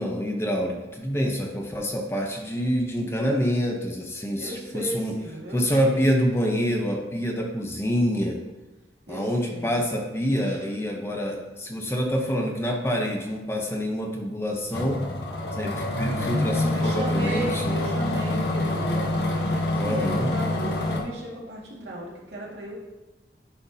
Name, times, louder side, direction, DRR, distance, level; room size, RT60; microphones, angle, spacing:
voice 1, 0.0-5.2 5.5-8.4 9.1-15.0 15.5-17.8 19.7-20.3, equal, 15° left, 1 dB, 0.7 m, -26 dB
voice 2, 4.4-6.0 9.1-9.8 16.7-19.5 19.8-22.8, right 1 dB, 80° right, -4 dB, 2.0 m, -35 dB
sound 1, 14.7-21.0, left 1 dB, 75° left, 1.1 m, -26 dB
10.0 x 5.6 x 2.7 m, 1.1 s
head